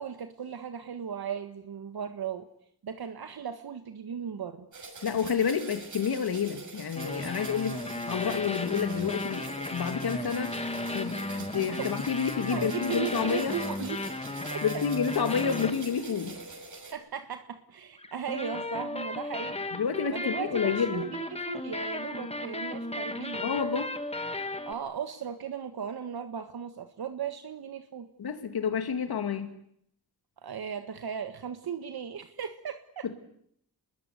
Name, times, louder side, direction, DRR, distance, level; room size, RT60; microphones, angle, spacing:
voice 1, 0.0-2.5 2.8-4.7 11.6-11.9 12.5-14.1 14.5-14.6 16.8-19.6 20.1-23.5 24.6-28.1 30.4-33.1, right 7 dB, 75° right, 8 dB, 1.6 m, -37 dB
sound 1, 4.7-16.9, right 3 dB, 55° right, 6.9 m, -45 dB
voice 2, 5.0-7.8 8.1-10.5 10.9-13.6 14.6-16.4 19.7-21.1 23.4-23.9 28.2-29.5 33.0-33.2, left 6 dB, 80° left, 7 dB, 2.7 m, -29 dB
sound 2, 7.0-16.5 18.0-24.7, left 2 dB, 15° left, 1.7 m, -35 dB
25.5 x 21.5 x 9.6 m, 0.71 s
wide cardioid pair, 90°, 37 cm